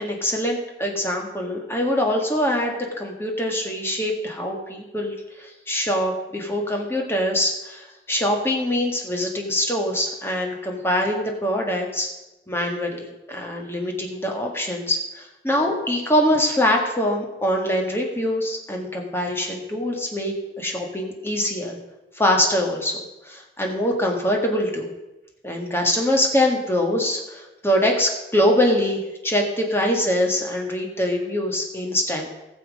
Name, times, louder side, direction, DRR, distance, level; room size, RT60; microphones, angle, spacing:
voice 1, 0.0-12.1 12.5-21.8 22.2-23.0 23.3-24.9 25.4-32.3, left 1 dB, 15° left, 1 dB, 1.7 m, -24 dB
16.0 x 7.1 x 5.3 m, 1.0 s
head